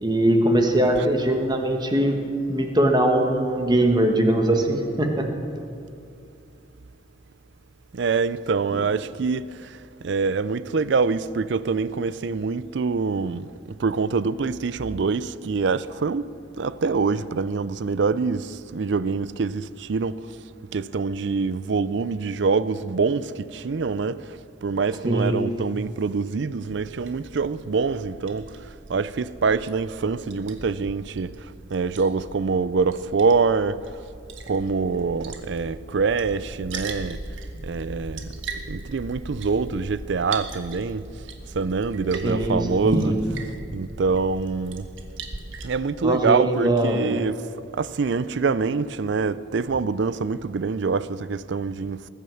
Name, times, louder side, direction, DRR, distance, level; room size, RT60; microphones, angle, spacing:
voice 1, 0.0-2.2 2.5-5.3 8.7-8.8 25.0-25.3 42.2-42.6 42.8-43.1 46.0-47.0, right 1 dB, 20° right, 1.4 m, -21 dB
voice 2, 7.9-16.3 16.6-20.2 20.7-34.0 34.5-37.2 37.6-38.3 38.7-41.1 41.5-44.9 45.6-47.5 47.7-52.1, right 4 dB, 65° right, 0.4 m, -25 dB
Liquid, 26.7-45.6, right 2 dB, 85° right, 1.5 m, -37 dB
20.5 x 9.4 x 7.1 m
head